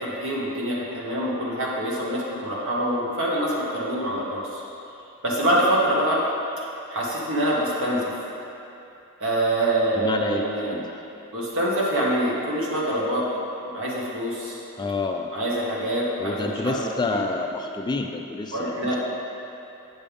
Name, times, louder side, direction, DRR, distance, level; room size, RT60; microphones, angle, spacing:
voice 1, 0.0-4.6 5.2-6.2 6.9-8.1 9.2-10.8 11.3-13.2 13.7-14.5 15.3-16.8 17.1-17.2 18.5-19.0, right 1 dB, 60° right, -5 dB, 1.6 m, -25 dB
voice 2, 9.9-10.9 14.8-15.3 16.2-19.0, left 3 dB, 20° left, 4 dB, 0.3 m, -29 dB
8.5 x 6.8 x 3.6 m, 2.8 s
head